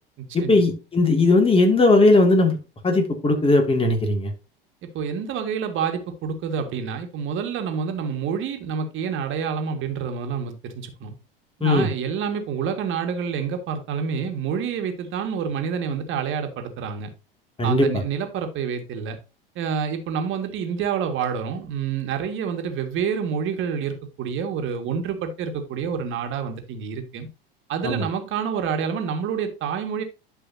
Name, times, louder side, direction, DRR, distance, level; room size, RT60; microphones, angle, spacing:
voice 1, 0.3-2.6 2.8-4.3 11.6-11.9 17.6-17.9 27.8-28.0, left 2 dB, 20° left, 2.8 m, -18 dB
voice 2, 4.9-11.1 11.6-17.1 17.6-19.2 19.6-27.3 27.7-30.0, right 7 dB, 45° right, 2.2 m, -28 dB
11.5 x 5.6 x 2.9 m
hypercardioid pair, 80°, 29 cm